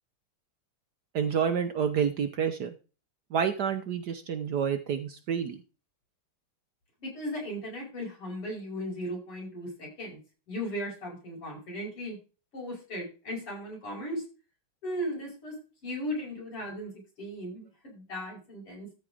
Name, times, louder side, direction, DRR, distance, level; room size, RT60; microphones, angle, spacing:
voice 1, 1.1-2.7 3.3-5.6, right 7 dB, 65° right, 9 dB, 1.1 m, -29 dB
voice 2, 7.0-10.2 10.5-12.2 12.5-14.2 14.8-15.5 15.8-16.9 17.2-18.9, equal, 80° left, -1 dB, 6.4 m, -36 dB
13.5 x 4.5 x 5.0 m, 0.33 s
omnidirectional pair, 2.4 m